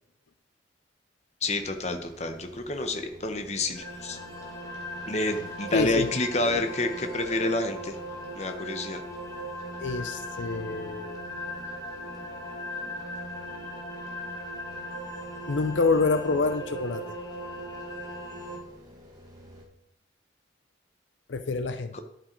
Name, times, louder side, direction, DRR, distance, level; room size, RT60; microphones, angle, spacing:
voice 1, 1.4-4.2 5.0-8.0 8.3-9.0, left 2 dB, 35° left, 6 dB, 1.0 m, -29 dB
sound 1, 1.4-19.7, left 1 dB, 20° right, 2.1 m, -51 dB
sound 2, 3.7-18.6, equal, 20° left, 2.2 m, -38 dB
voice 2, 5.7-6.1 9.8-11.3 15.5-17.0 21.3-21.9, left 3 dB, 75° left, 10 dB, 0.6 m, -27 dB
10.5 x 8.0 x 4.6 m, 0.76 s
head